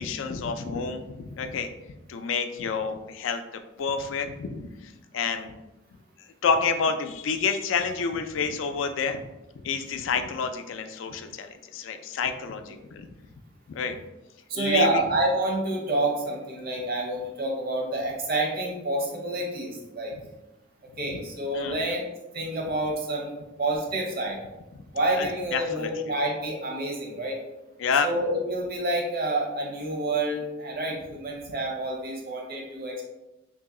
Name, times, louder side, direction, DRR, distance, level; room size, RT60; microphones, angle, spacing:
voice 1, 0.0-1.7 2.1-3.4 3.8-5.5 6.4-9.2 9.6-13.1 13.7-14.0 14.5-15.0 21.0-21.2 21.5-21.8 25.2-25.9 27.8-28.1, left 5 dB, 70° left, 7 dB, 0.4 m, -29 dB
voice 2, 14.5-20.1 21.0-22.0 22.3-23.3 23.6-24.4 24.9-27.4 28.0-33.0, right 2 dB, 50° right, 0 dB, 0.8 m, -28 dB
3.0 x 2.7 x 3.7 m, 0.99 s
head